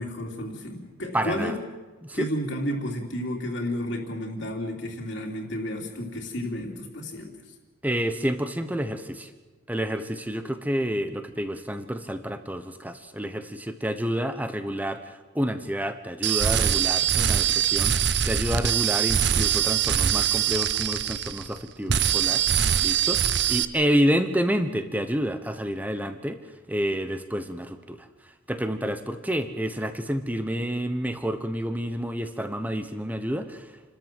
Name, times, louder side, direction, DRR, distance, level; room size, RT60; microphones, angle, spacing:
voice 1, 0.0-1.5 2.1-7.4, left 1 dB, 60° left, -1 dB, 3.2 m, -32 dB
voice 2, 1.1-1.6 2.0-2.3 7.8-9.3 9.7-22.4 22.8-26.4 26.7-28.1 28.5-33.7, equal, 10° right, 9 dB, 1.1 m, -29 dB
sound 1, 16.2-21.6 21.9-23.7, right 9 dB, 55° right, 0.8 m, -23 dB
29.0 x 13.5 x 7.5 m, 1.3 s
head